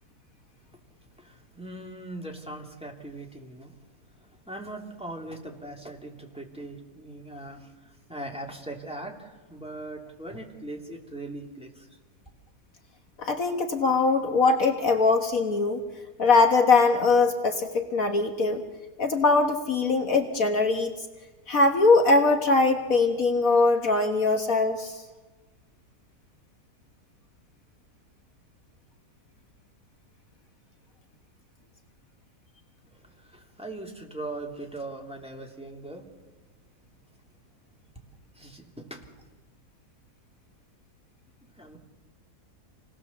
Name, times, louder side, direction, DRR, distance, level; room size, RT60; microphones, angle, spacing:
voice 1, 1.2-3.8 4.2-11.9 32.9-36.0 38.3-39.1 41.4-41.8, right 2 dB, 5° right, 0 dB, 2.9 m, -40 dB
voice 2, 13.2-15.8 16.2-18.6 19.0-20.9 21.5-25.0, left 3 dB, 60° left, 5 dB, 1.7 m, -22 dB
28.0 x 19.0 x 7.2 m, 1.3 s
omnidirectional pair, 1.7 m